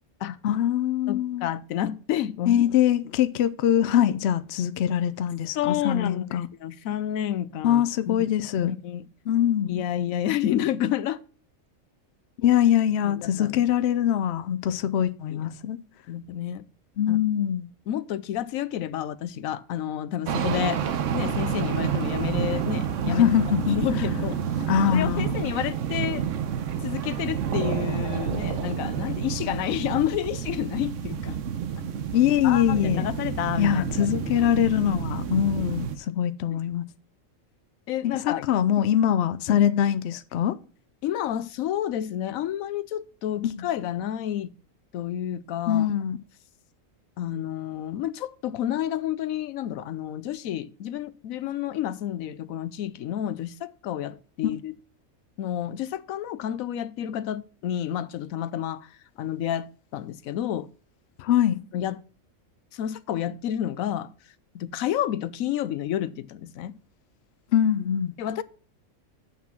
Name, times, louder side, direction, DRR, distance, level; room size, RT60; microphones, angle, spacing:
voice 1, 0.4-1.5 2.5-6.5 7.6-8.7 9.3-9.8 12.4-15.8 17.0-17.7 23.1-23.8 24.7-25.5 32.1-33.1 33.6-36.8 38.0-40.6 43.4-43.7 45.7-46.2 61.2-61.6 67.5-68.1, left 10 dB, 65° left, 0.7 m, -23 dB
voice 2, 1.1-2.6 5.5-8.3 8.6-9.1 9.7-11.2 13.0-13.6 15.3-15.5 16.1-16.6 17.1-17.2 17.9-20.8 21.1-23.2 23.7-24.4 24.8-26.3 26.8-31.4 32.4-34.2 37.9-38.4 39.5-39.6 41.0-44.5 44.9-45.9 47.2-54.7 55.4-58.9 59.2-59.7 59.9-60.7 61.7-62.0 62.7-64.1 64.5-66.7 68.2-68.4, left 11 dB, 85° left, 1.0 m, -30 dB
sound 1, 20.3-36.0, right 8 dB, 70° right, 1.1 m, -29 dB
7.4 x 6.0 x 5.8 m
omnidirectional pair, 1.4 m